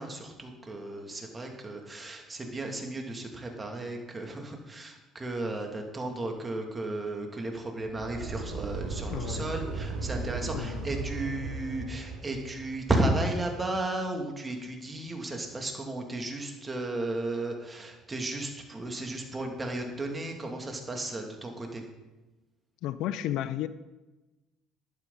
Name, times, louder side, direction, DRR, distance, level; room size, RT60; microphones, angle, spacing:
voice 1, 0.0-21.8, right 2 dB, 25° right, 2.7 m, -34 dB
sound 1, 7.8-13.0, right 3 dB, 85° right, 2.8 m, -36 dB
voice 2, 9.1-9.5 10.5-10.9 22.8-23.7, left 12 dB, 70° left, 0.5 m, -33 dB
12.0 x 11.0 x 4.1 m
hypercardioid pair, 65°, 0 cm